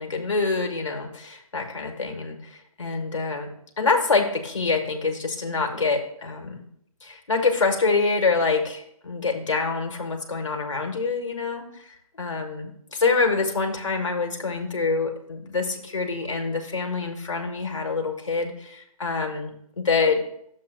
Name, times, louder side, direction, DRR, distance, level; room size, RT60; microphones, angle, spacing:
voice 1, 0.0-6.6 7.0-20.2, left 4 dB, 55° left, 3 dB, 1.4 m, -26 dB
10.5 x 7.2 x 2.3 m, 0.71 s
figure-of-eight pair, 175°, 19 cm